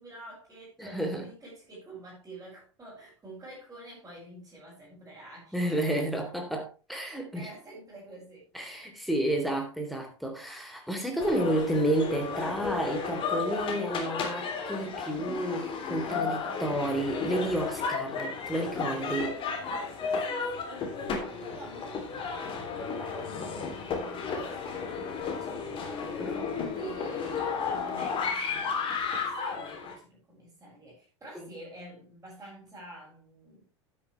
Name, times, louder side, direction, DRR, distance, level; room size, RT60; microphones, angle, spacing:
voice 1, 0.0-6.1 7.0-8.5 19.4-26.0 26.5-33.7, right 2 dB, 15° right, 7.6 m, -48 dB
voice 2, 0.8-1.3 5.5-7.5 8.5-19.3 26.2-26.5, right 1 dB, ahead, 3.6 m, -31 dB
sound 1, 11.2-29.9, left 5 dB, 35° left, 3.2 m, -33 dB
12.0 x 9.6 x 3.4 m
figure-of-eight pair, 80°, 15 cm